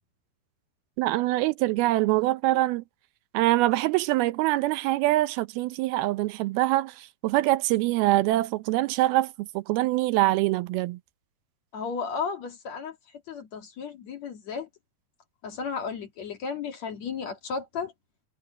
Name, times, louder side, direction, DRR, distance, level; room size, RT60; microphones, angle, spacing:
voice 1, 1.0-2.8 3.3-11.0, right 17 dB, 80° right, 2.5 m, -24 dB
voice 2, 11.7-13.0 13.3-14.7 15.4-17.9, left 5 dB, 50° left, 2.7 m, -34 dB
omnidirectional pair, 4.5 m